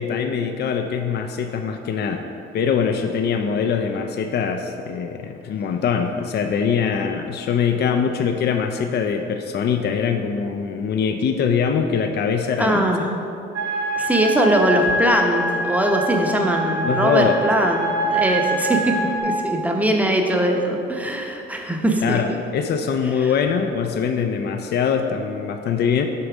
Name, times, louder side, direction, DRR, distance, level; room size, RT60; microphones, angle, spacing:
voice 1, 0.0-2.2 2.5-12.9 16.8-17.3 22.0-26.1, left 6 dB, 55° left, 6 dB, 0.5 m, -23 dB
voice 2, 12.6-13.1 14.0-19.0 19.2-22.4 23.2-23.3, right 1 dB, 5° right, 2 dB, 0.8 m, -21 dB
sound 1, 13.5-19.2, right 1 dB, 60° right, 1.5 m, -24 dB
6.7 x 3.9 x 6.1 m, 2.7 s
cardioid pair, 90°, 20 cm